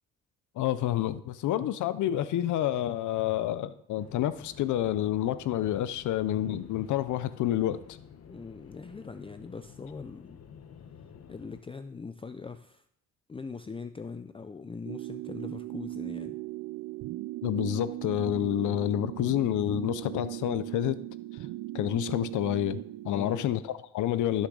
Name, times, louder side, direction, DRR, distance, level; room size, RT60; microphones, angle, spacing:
voice 1, 0.6-7.8 17.4-21.0 21.7-24.5, left 12 dB, 80° left, 0.6 m, -29 dB
sound 1, 4.0-11.6, left 7 dB, 55° left, 1.1 m, -51 dB
voice 2, 8.2-10.4 11.3-12.8 13.3-16.4 23.1-23.5, left 4 dB, 20° left, 0.5 m, -41 dB
sound 2, 14.8-23.6, right 17 dB, 85° right, 0.5 m, -38 dB
14.5 x 6.5 x 3.9 m
cardioid pair, 90°, 30 cm